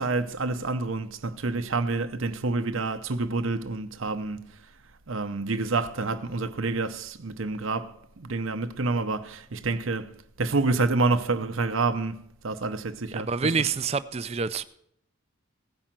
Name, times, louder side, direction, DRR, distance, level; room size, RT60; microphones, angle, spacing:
voice 1, 0.0-4.4 5.1-10.1 10.4-12.2 12.4-13.7, right 3 dB, 65° right, 0.8 m, -28 dB
voice 2, 13.1-14.6, right 5 dB, 30° right, 0.4 m, -27 dB
16.5 x 5.6 x 7.4 m
head